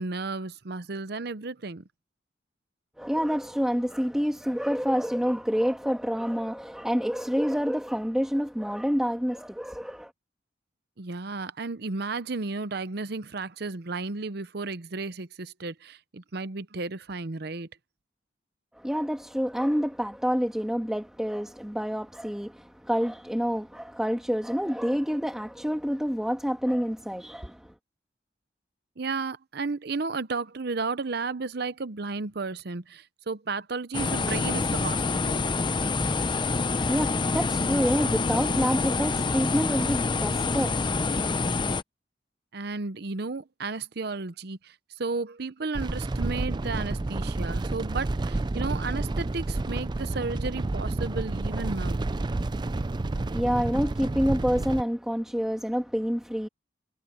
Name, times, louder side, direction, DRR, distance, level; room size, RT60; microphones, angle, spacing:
voice 1, 0.0-1.8 11.0-17.7 29.0-35.5 42.5-52.0, right 3 dB, 60° right, 0.8 m, -33 dB
voice 2, 3.0-10.1 18.7-27.7 36.7-41.3 53.1-56.5, equal, 5° right, 1.6 m, -28 dB
sound 1, 33.9-41.8, left 3 dB, 25° left, 0.6 m, -26 dB
sound 2, 45.7-54.8, right 2 dB, 25° right, 0.4 m, -30 dB
head